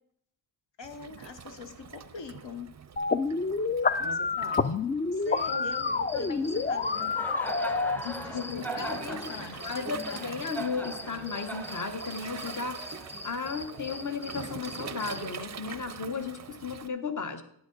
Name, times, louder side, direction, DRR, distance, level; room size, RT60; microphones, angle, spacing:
voice 1, 0.8-2.7 4.0-4.2 5.1-7.1 8.2-9.9, left 5 dB, 65° left, 1.1 m, -44 dB
Waves surf, 0.8-16.9, right 7 dB, 35° right, 0.5 m, -44 dB
sound 1, 3.0-8.0, left 4 dB, 25° left, 0.3 m, -28 dB
voice 2, 4.0-4.7 5.5-5.8 6.1-6.7 7.0-7.2 7.9-9.3 9.6-12.8 13.2-17.4, left 5 dB, 40° left, 1.0 m, -35 dB
Cricket, 5.3-15.3, right 1 dB, 5° left, 0.8 m, -40 dB
10.5 x 9.1 x 3.9 m
wide cardioid pair, 100°, 48 cm